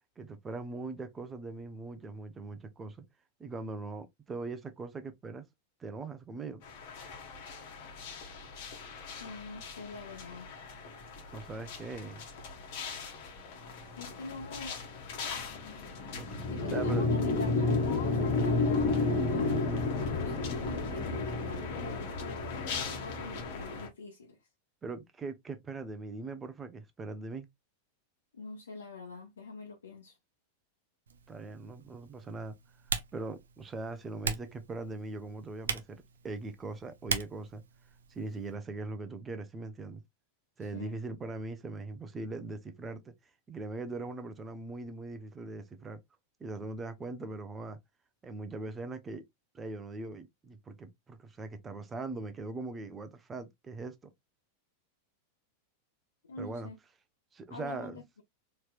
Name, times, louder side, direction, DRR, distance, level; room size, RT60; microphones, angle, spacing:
voice 1, 0.2-3.0 3.4-5.4 5.8-6.6 11.3-12.3 16.2-16.3 16.7-17.0 24.8-27.5 31.3-32.5 33.1-37.6 38.1-40.0 40.6-43.1 43.5-46.0 46.4-47.8 48.2-49.2 49.5-53.9 56.4-56.7 57.3-58.0, right 3 dB, 20° right, 0.7 m, -40 dB
sound 1, 6.6-23.9, left 3 dB, 50° left, 1.4 m, -33 dB
voice 2, 9.2-10.5 13.9-14.8 16.4-24.4 28.3-30.2 40.6-41.0 56.3-56.8 57.5-58.2, left 4 dB, 70° left, 1.0 m, -45 dB
Typing, 31.1-38.6, right 6 dB, 65° right, 0.6 m, -40 dB
4.3 x 3.2 x 2.4 m
figure-of-eight pair, 90°, 0 cm